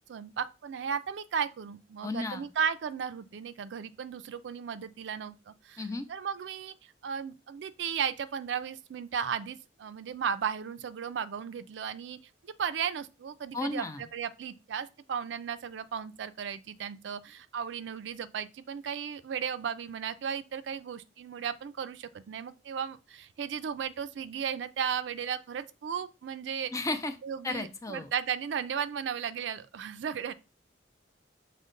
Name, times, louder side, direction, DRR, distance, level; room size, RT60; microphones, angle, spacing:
voice 1, 0.1-5.8 6.1-6.7 7.0-12.2 12.6-13.9 14.1-26.7 27.2-30.3, right 7 dB, 75° right, 0.4 m, -35 dB
voice 2, 2.0-2.5 5.8-6.1 13.5-14.0 26.7-27.2 27.4-28.1, left 2 dB, 20° left, 0.4 m, -34 dB
6.2 x 2.1 x 3.8 m
head